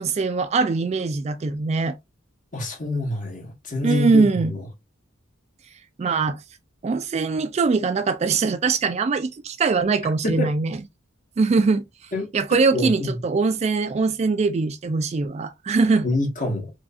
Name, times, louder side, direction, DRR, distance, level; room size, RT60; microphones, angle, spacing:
voice 1, 0.0-2.0 3.8-4.5 6.0-6.4 6.8-10.8 11.4-11.8 12.3-16.1, right 4 dB, 35° right, 0.3 m, -22 dB
voice 2, 2.5-4.6 10.2-10.5 12.1-13.1 16.0-16.7, left 2 dB, 40° left, 1.2 m, -26 dB
4.7 x 2.6 x 2.3 m
head